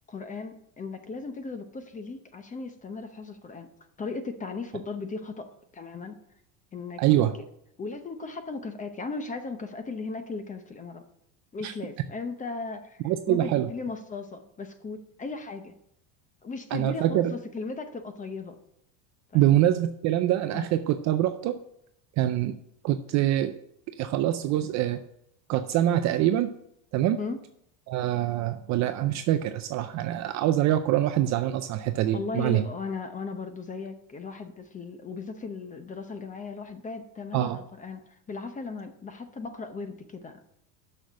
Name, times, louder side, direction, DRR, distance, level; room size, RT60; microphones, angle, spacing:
voice 1, 0.1-3.7 4.0-6.2 6.7-7.0 7.8-11.0 11.5-13.0 13.3-15.7 16.4-18.6 19.3-19.6 20.5-20.7 27.2-27.4 32.1-40.4, left 4 dB, 15° left, 9 dB, 0.7 m, -37 dB
voice 2, 7.0-7.3 11.6-11.7 13.0-13.7 16.7-17.3 19.3-21.6 22.2-22.6 22.8-23.5 24.0-25.0 25.5-26.5 26.9-27.2 27.9-32.6 37.3-37.6, right 13 dB, 40° right, 9 dB, 0.4 m, -24 dB
6.5 x 6.3 x 7.0 m, 0.76 s
supercardioid pair, 135°, 49 cm